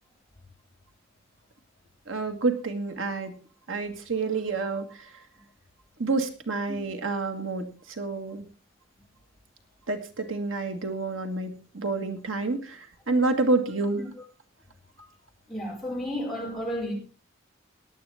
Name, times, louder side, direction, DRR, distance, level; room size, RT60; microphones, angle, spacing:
voice 1, 2.1-3.3 3.7-5.1 6.0-8.4 9.9-14.0, right 3 dB, 85° right, 1.7 m, -28 dB
voice 2, 15.5-16.9, equal, ahead, 4.8 m, -32 dB
18.0 x 10.5 x 3.4 m
head